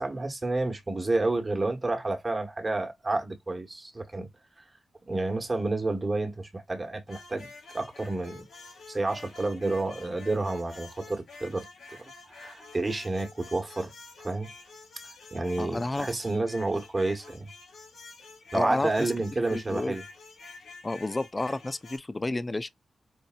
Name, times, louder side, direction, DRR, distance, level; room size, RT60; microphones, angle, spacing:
voice 1, 0.0-4.3 5.1-7.5 7.7-8.4 8.9-11.6 12.3-13.9 14.2-14.5 15.3-17.5 18.5-20.0, right 2 dB, 35° right, 1.4 m, -30 dB
sound 1, 7.1-22.0, left 3 dB, 80° left, 3.4 m, -49 dB
voice 2, 15.6-16.1 18.5-19.1 19.5-19.9 20.8-22.7, left 2 dB, 30° left, 0.4 m, -30 dB
5.4 x 2.6 x 2.5 m
cardioid pair, 55°, 0 cm